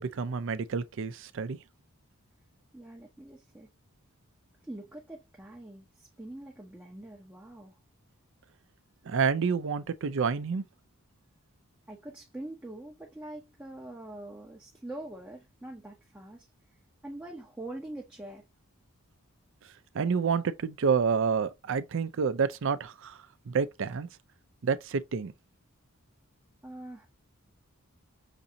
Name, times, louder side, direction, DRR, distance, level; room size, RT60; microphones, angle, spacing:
voice 1, 0.0-1.6 9.1-10.6 19.9-23.2 23.5-24.1 24.6-25.3, right 5 dB, 60° right, 0.4 m, -28 dB
voice 2, 2.7-3.7 4.6-7.7 11.9-18.4 26.6-27.1, right 1 dB, 5° right, 0.6 m, -44 dB
5.9 x 2.6 x 2.7 m
head